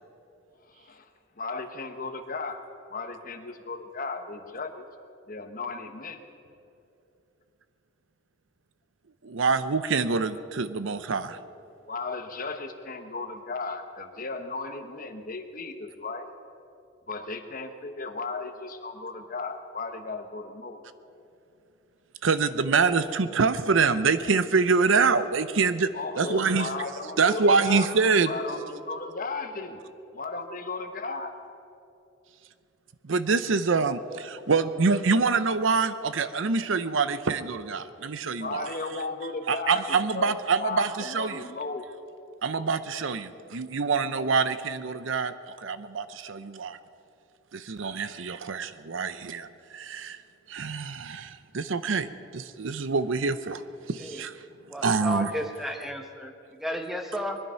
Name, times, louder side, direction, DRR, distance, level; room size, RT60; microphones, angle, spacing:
voice 1, 0.6-1.1 1.4-2.6 2.9-4.9 5.3-6.2 11.8-16.3 17.1-20.8 25.9-27.9 28.2-29.8 30.1-31.3 38.4-41.9, left 3 dB, 45° left, 6 dB, 1.1 m, -35 dB
voice 2, 9.2-11.4 22.2-26.7 27.2-28.3 33.0-38.7 39.5-41.4 42.4-46.8 47.5-50.2 50.5-53.6 53.9-54.4 54.8-55.3, right 4 dB, 75° right, 13 dB, 0.7 m, -25 dB
voice 3, 54.7-57.4, equal, ahead, 4 dB, 1.1 m, -33 dB
21.0 x 12.0 x 5.7 m, 2.7 s
head